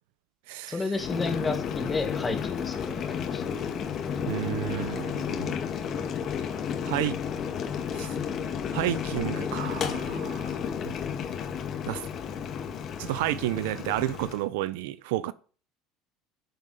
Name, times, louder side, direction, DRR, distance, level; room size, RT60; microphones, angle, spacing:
voice 1, 0.7-3.4, left 3 dB, 10° left, 1.9 m, -31 dB
Boiling, 0.9-14.4, left 7 dB, 30° left, 1.9 m, -32 dB
voice 2, 4.3-5.6 6.8-7.2 7.9-8.1 8.7-10.6 10.8-10.9 11.9-12.0 13.0-15.3, right 15 dB, 80° right, 0.8 m, -31 dB
12.5 x 7.8 x 5.6 m
cardioid pair, 170°, 0 cm